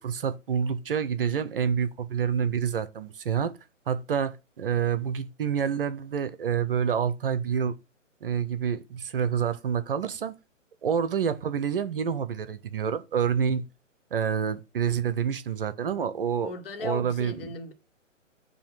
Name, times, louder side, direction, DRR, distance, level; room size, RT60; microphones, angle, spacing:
voice 1, 0.0-3.5 3.9-7.7 8.2-10.3 10.8-13.6 14.1-16.5 16.8-17.5, right 7 dB, 45° right, 0.7 m, -28 dB
voice 2, 16.4-17.7, left 4 dB, 45° left, 1.7 m, -37 dB
7.0 x 2.8 x 5.8 m
figure-of-eight pair, 130°, 38 cm